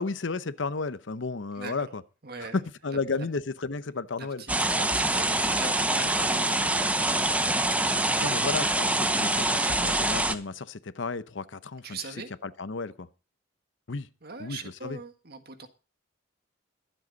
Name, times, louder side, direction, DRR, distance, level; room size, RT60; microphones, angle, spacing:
voice 1, 0.0-2.0 2.4-2.5 2.8-4.4 8.2-12.0 12.4-13.1 13.9-14.1 14.4-15.0, left 4 dB, 75° left, 0.8 m, -33 dB
voice 2, 1.5-1.9 2.2-2.6 3.2-3.3 4.2-6.9 11.8-12.3 14.2-15.7, right 4 dB, 55° right, 1.7 m, -41 dB
sound 1, 4.5-10.3, right 2 dB, 10° right, 0.8 m, -25 dB
22.5 x 7.8 x 4.0 m
head